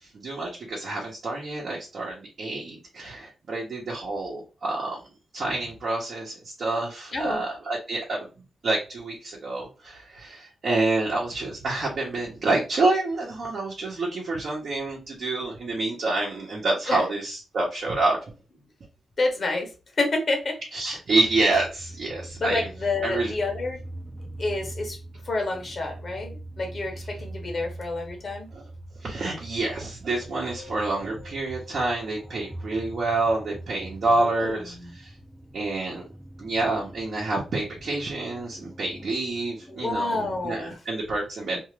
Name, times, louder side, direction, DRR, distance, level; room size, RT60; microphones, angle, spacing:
voice 1, 0.0-5.0 5.3-18.3 20.7-22.7 23.0-23.3 28.5-28.6 29.0-35.1 35.5-36.0 36.4-41.6, right 2 dB, 60° right, -3 dB, 0.9 m, -28 dB
voice 2, 7.1-7.4 16.9-17.0 19.2-19.7 20.0-20.6 22.4-23.8 24.4-25.0 25.2-28.5 34.1-34.9 39.7-40.8, left 2 dB, 45° left, 3 dB, 0.9 m, -29 dB
sound 1, 21.2-40.7, right 1 dB, 5° right, 0.5 m, -43 dB
Keyboard (musical), 30.5-33.3, left 4 dB, 30° right, 0.9 m, -51 dB
2.5 x 2.4 x 3.1 m, 0.31 s
wide cardioid pair, 110°, 0 cm